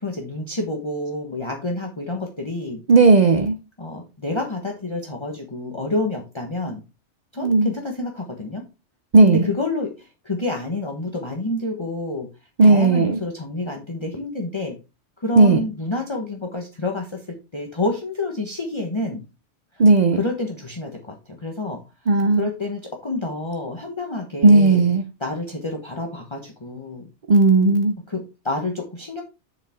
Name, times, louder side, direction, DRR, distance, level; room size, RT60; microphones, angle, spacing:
voice 1, 0.0-2.8 3.8-6.8 7.3-8.6 9.2-12.3 12.6-14.8 15.2-19.2 19.7-19.8 20.1-24.8 25.2-27.1 28.1-29.2, left 2 dB, 25° left, 1.2 m, -28 dB
voice 2, 2.9-3.6 7.4-7.7 9.1-9.5 12.6-13.2 15.4-15.6 19.8-20.2 22.1-22.5 24.4-25.0 27.3-28.0, right 3 dB, 45° right, 0.7 m, -14 dB
7.3 x 6.6 x 3.6 m
omnidirectional pair, 1.2 m